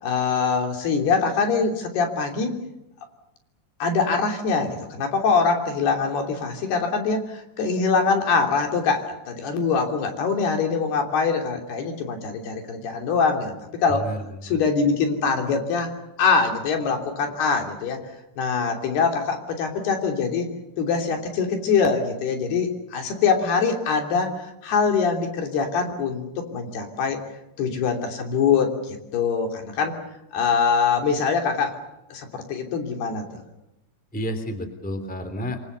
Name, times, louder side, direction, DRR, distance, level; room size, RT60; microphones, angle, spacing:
voice 1, 0.0-2.5 3.8-13.5 13.8-14.1 14.5-15.9 16.2-18.0 18.4-20.5 20.8-24.3 24.6-27.2 27.6-29.9 30.3-31.8 32.1-33.4, left 5 dB, 80° left, 4 dB, 5.2 m, -23 dB
voice 2, 13.9-14.6 34.1-35.6, equal, 5° left, 9 dB, 2.4 m, -31 dB
28.0 x 23.5 x 6.8 m, 0.89 s
omnidirectional pair, 4.5 m